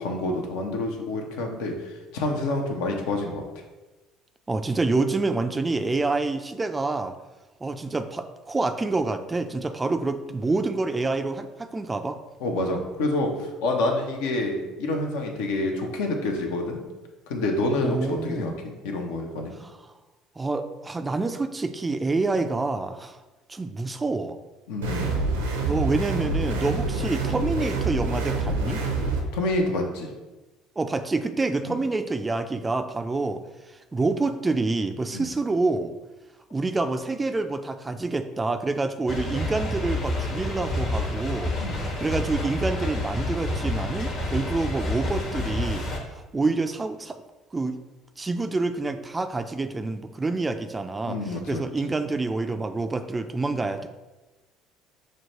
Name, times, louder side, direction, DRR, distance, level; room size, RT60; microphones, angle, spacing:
voice 1, 0.0-3.4 12.4-16.8 17.3-18.5 18.8-19.5 24.7-25.2 29.3-30.1 31.6-31.8 35.1-35.3 41.6-41.8 51.1-51.9, left 2 dB, 70° left, 2 dB, 0.6 m, -28 dB
voice 2, 4.5-7.2 7.6-12.2 17.8-18.5 19.6-19.8 20.4-23.2 23.5-24.4 25.6-28.8 30.8-36.0 36.5-41.5 42.0-47.2 47.5-47.8 48.2-53.9, right 3 dB, 20° right, 9 dB, 0.3 m, -27 dB
sound 1, 24.8-29.2, right 3 dB, 85° right, 0.6 m, -26 dB
sound 2, 39.1-46.0, left 1 dB, 50° left, 1.0 m, -29 dB
6.1 x 2.2 x 2.9 m, 1.1 s
hypercardioid pair, 65°, 0 cm